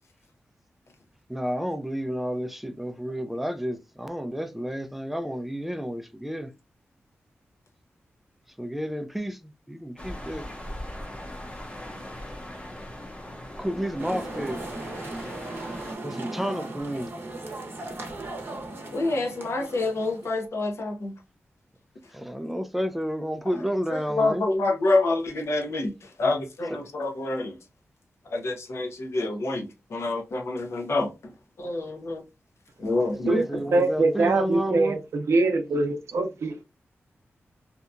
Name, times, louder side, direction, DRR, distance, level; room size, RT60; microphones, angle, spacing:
voice 1, 1.3-6.5 8.6-10.5 13.6-14.6 16.0-17.1 22.1-24.4 33.0-35.0, equal, 5° right, 0.3 m, -31 dB
sound 1, 10.0-16.0, left 1 dB, 25° left, 0.7 m, -39 dB
sound 2, 14.0-20.5, right 2 dB, 55° right, 0.7 m, -37 dB
voice 2, 18.9-21.1 23.9-27.5 28.3-31.1 31.6-32.2 32.8-33.6, left 2 dB, 75° left, 0.7 m, -27 dB
voice 3, 33.7-35.0 35.3-36.6, right 3 dB, 90° right, 0.5 m, -23 dB
2.8 x 2.2 x 2.4 m
wide cardioid pair, 120°, 5 cm